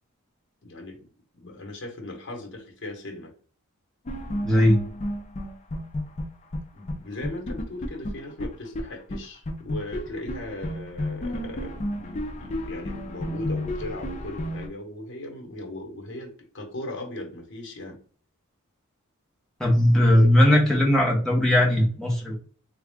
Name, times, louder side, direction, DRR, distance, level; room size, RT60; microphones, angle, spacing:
voice 1, 0.6-3.3 6.7-18.0 20.2-20.3, left 1 dB, 60° left, 1.1 m, -38 dB
sound 1, 4.0-6.6 6.9-7.0 7.2-8.8 9.1-9.2 9.4-14.7, left 1 dB, 35° left, 0.5 m, -32 dB
voice 2, 4.4-4.8 19.6-22.4, left 1 dB, 5° left, 1.0 m, -19 dB
3.5 x 2.4 x 3.5 m
head